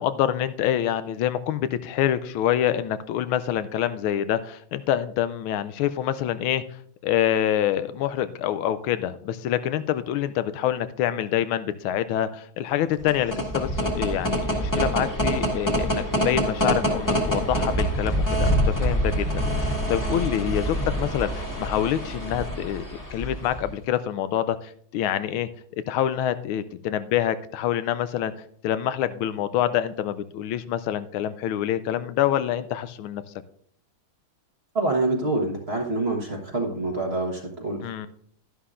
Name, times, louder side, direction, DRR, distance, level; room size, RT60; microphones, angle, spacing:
voice 1, 0.0-6.6 7.0-22.8 23.1-28.3 28.6-33.2 37.8-38.1, left 11 dB, 80° left, 13 dB, 1.4 m, -26 dB
sound 1, 12.9-23.7, equal, 10° left, 1.5 m, -25 dB
voice 2, 34.7-38.1, right 2 dB, 35° right, 0 dB, 1.4 m, -26 dB
11.5 x 11.0 x 2.5 m, 0.63 s
omnidirectional pair, 2.3 m